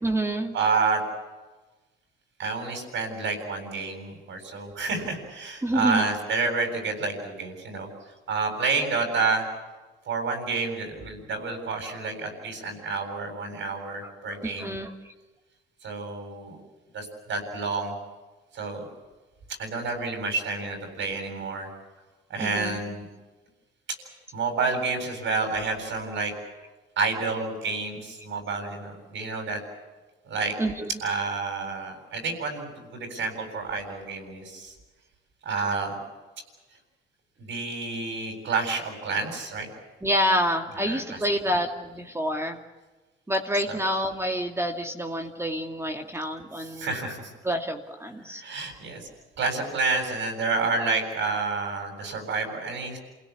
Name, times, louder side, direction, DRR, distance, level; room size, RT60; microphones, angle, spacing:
voice 1, 0.0-0.5 5.6-6.1 14.0-15.1 22.4-22.8 30.6-30.9 40.0-42.6 43.3-46.9 47.4-48.4, equal, 15° right, 3 dB, 2.5 m, -28 dB
voice 2, 0.5-1.0 2.4-7.9 8.3-9.5 10.1-14.7 15.8-16.6 16.9-17.9 18.5-18.8 19.6-21.7 22.3-23.1 24.3-26.3 27.0-29.6 30.2-30.5 31.0-34.7 35.4-36.0 37.4-39.7 40.8-41.6 43.5-43.8 46.8-47.2 48.4-49.1 49.4-53.0, right 4 dB, 70° right, 4 dB, 7.9 m, -29 dB
28.5 x 17.5 x 8.7 m, 1.2 s
cardioid pair, 90°, 20 cm